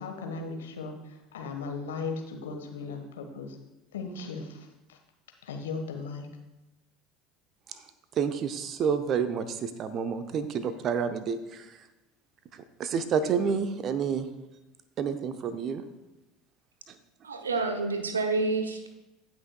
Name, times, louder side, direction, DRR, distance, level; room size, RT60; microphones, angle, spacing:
voice 1, 0.0-3.5 3.9-5.0 5.4-6.3, left 4 dB, 70° left, 3 dB, 1.3 m, -37 dB
voice 2, 8.2-11.7 12.8-14.3 15.0-15.8, right 6 dB, 40° right, 11 dB, 0.8 m, -29 dB
voice 3, 17.2-18.9, right 3 dB, 80° right, 6 dB, 0.9 m, -28 dB
17.0 x 6.1 x 2.3 m, 0.99 s
figure-of-eight pair, 70°, 0 cm